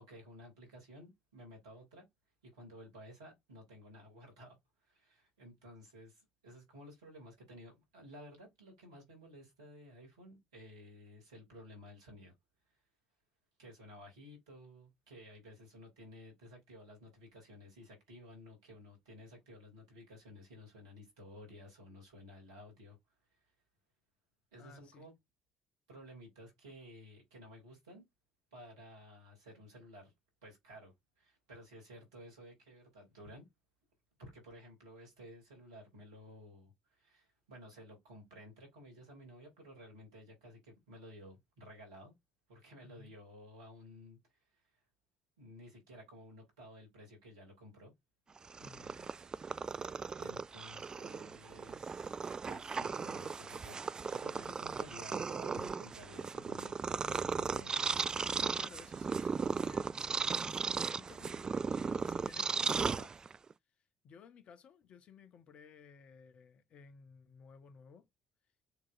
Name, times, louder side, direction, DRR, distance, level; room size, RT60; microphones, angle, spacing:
voice 1, 0.0-2.1 2.4-4.6 4.8-12.3 13.6-23.0 24.5-25.1 25.9-28.0 28.5-30.1 30.4-33.5 34.2-42.1 42.5-44.2 45.4-47.9 50.2-52.2 52.5-57.8, left 1 dB, 80° right, 2.4 m, -54 dB
voice 2, 24.6-25.1 42.8-43.1 48.6-49.1 58.3-60.3 60.9-61.5 61.8-63.1 63.8-68.1, left 6 dB, 55° left, 1.0 m, -57 dB
Purr, 48.4-63.5, right 5 dB, 30° right, 0.3 m, -37 dB
6.5 x 3.1 x 2.4 m
hypercardioid pair, 50°, 2 cm